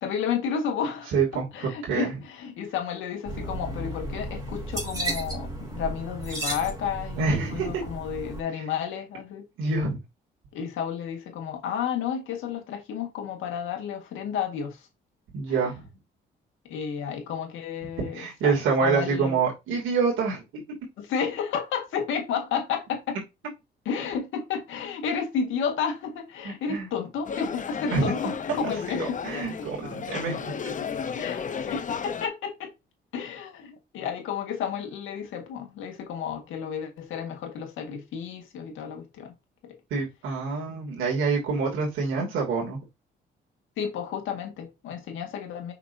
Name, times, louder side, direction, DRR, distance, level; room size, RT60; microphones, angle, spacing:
voice 1, 0.0-1.1 1.5-9.5 10.5-14.9 15.5-15.7 16.7-18.6 18.8-19.4 21.0-23.2 23.9-29.2 29.6-29.7 31.2-32.7 33.1-39.3 39.6-39.8 43.8-45.7, left 7 dB, 85° left, 1.9 m, -32 dB
voice 2, 1.1-2.1 7.2-7.8 9.6-10.0 15.3-15.9 18.1-20.4 26.4-26.9 27.9-28.1 29.0-30.8 39.9-42.8, right 4 dB, 85° right, 2.9 m, -26 dB
sound 1, 3.3-8.4, right 1 dB, 20° right, 3.6 m, -34 dB
sound 2, 27.2-32.3, left 6 dB, 40° left, 0.8 m, -33 dB
6.1 x 5.9 x 2.8 m
cardioid pair, 90°, 20 cm